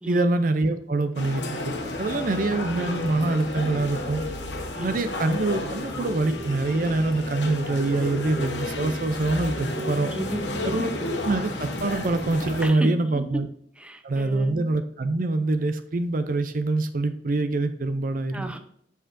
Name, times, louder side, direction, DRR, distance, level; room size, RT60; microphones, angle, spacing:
voice 1, 0.1-4.2 4.8-10.1 10.6-13.5 14.0-18.5, right 2 dB, 50° right, 10 dB, 0.5 m, -25 dB
sound 1, 1.2-12.7, left 2 dB, 75° left, 1.3 m, -32 dB
voice 2, 4.7-5.2 10.1-11.1 12.6-12.9 13.8-14.8 18.3-18.6, right 1 dB, 5° right, 6 dB, 0.6 m, -34 dB
7.6 x 6.6 x 2.6 m, 0.67 s
head